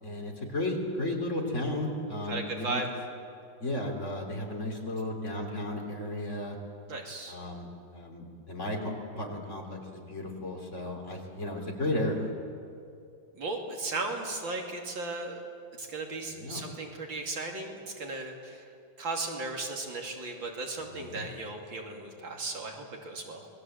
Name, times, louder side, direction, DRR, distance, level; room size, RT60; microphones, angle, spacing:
voice 1, 0.0-2.8 3.6-6.6 7.3-7.7 7.9-12.3 16.3-16.6 20.9-21.2, left 1 dB, 35° left, 1 dB, 3.6 m, -34 dB
voice 2, 2.3-2.9 6.9-7.4 13.4-15.4 15.8-18.7 19.0-23.5, right 3 dB, 75° right, 1 dB, 3.4 m, -36 dB
27.5 x 20.5 x 8.0 m, 2.6 s
omnidirectional pair, 2.1 m